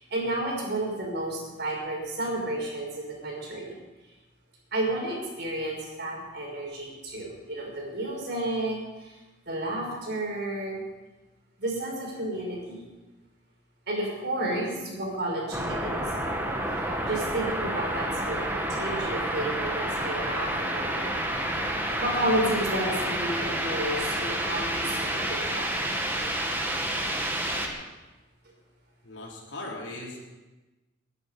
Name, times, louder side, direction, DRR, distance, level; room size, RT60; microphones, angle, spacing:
voice 1, 0.0-3.8 4.7-9.2 9.5-10.8 11.6-12.9 13.9-21.2 22.0-25.7, right 1 dB, 60° right, -1 dB, 5.8 m, -32 dB
sound 1, 15.5-27.7, right 1 dB, 10° right, 1.9 m, -29 dB
voice 2, 29.0-30.2, left 2 dB, 75° left, -1 dB, 3.7 m, -39 dB
22.5 x 11.0 x 5.3 m, 1.1 s
head